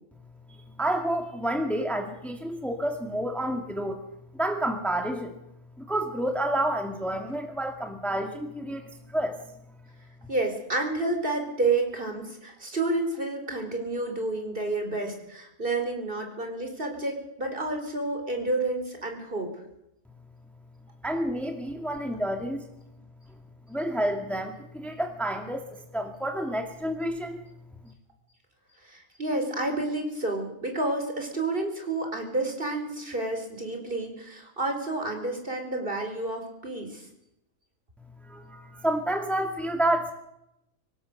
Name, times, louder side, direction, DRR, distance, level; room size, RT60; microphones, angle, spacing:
voice 1, 0.8-4.0 4.3-5.4 5.8-8.8 9.1-9.4 21.0-22.7 23.7-25.6 25.9-27.4 38.2-40.1, right 1 dB, ahead, 4 dB, 2.2 m, -29 dB
voice 2, 10.3-19.5 28.8-37.1, right 2 dB, 40° right, 3 dB, 4.7 m, -30 dB
25.0 x 18.5 x 6.8 m, 0.83 s
omnidirectional pair, 1.4 m